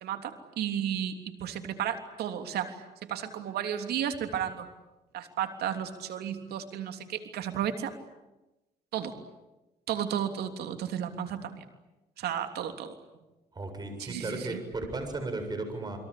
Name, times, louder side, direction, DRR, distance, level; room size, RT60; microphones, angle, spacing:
voice 1, 0.0-4.7 5.1-7.9 8.9-9.1 9.9-11.6 12.2-12.9 14.0-14.6, right 9 dB, 70° right, 7 dB, 3.2 m, -33 dB
voice 2, 13.5-16.0, right 2 dB, 25° right, 6 dB, 7.4 m, -35 dB
29.0 x 23.0 x 8.7 m, 1.0 s
cardioid pair, 110°, 17 cm